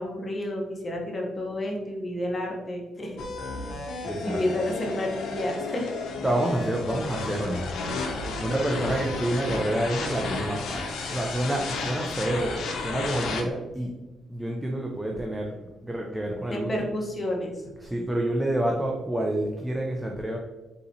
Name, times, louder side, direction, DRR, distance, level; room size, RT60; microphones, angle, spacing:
voice 1, 0.0-3.2 3.9-5.9 16.5-17.7, left 1 dB, 30° left, 0 dB, 0.9 m, -30 dB
sound 1, 3.2-13.4, left 3 dB, 75° left, 0.7 m, -33 dB
voice 2, 4.0-4.4 6.2-7.9 8.4-13.9 14.3-15.5 15.8-16.9 17.8-20.4, right 1 dB, 10° right, 0 dB, 0.5 m, -28 dB
4.0 x 3.9 x 2.7 m, 1.1 s
cardioid pair, 90°, 0 cm